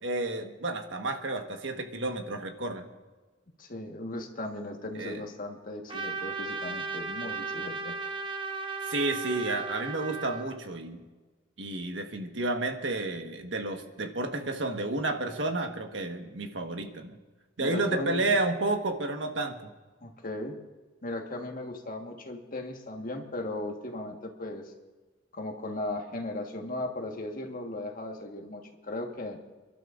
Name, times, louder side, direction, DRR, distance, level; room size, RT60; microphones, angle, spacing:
voice 1, 0.0-2.9 4.9-5.2 8.8-11.0 11.6-17.2 17.6-19.7, right 2 dB, 80° right, 5 dB, 1.4 m, -31 dB
voice 2, 3.6-7.9 17.6-18.3 20.0-20.6 21.0-24.7 25.3-29.4, left 1 dB, 50° left, 3 dB, 1.5 m, -37 dB
Trumpet, 5.9-10.6, right 4 dB, 25° right, 0.9 m, -35 dB
30.0 x 12.0 x 2.6 m, 1.3 s
head